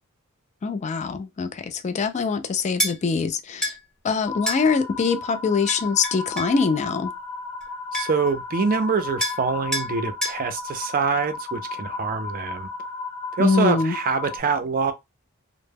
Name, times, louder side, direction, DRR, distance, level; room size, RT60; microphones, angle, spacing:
voice 1, 0.6-3.8 4.0-7.1 13.4-14.0, left 5 dB, 35° left, 0.3 m, -23 dB
sound 1, 2.8-3.0 3.6-3.8 4.5-4.6 5.7-6.6 7.6-7.7 7.9-8.3 9.2-9.4 9.7-9.9 10.2-10.4, equal, 5° left, 0.7 m, -27 dB
sound 2, 4.2-14.4, left 4 dB, 75° left, 0.9 m, -34 dB
voice 2, 7.9-12.7 13.4-14.9, right 5 dB, 40° right, 0.4 m, -25 dB
2.1 x 2.0 x 3.3 m
head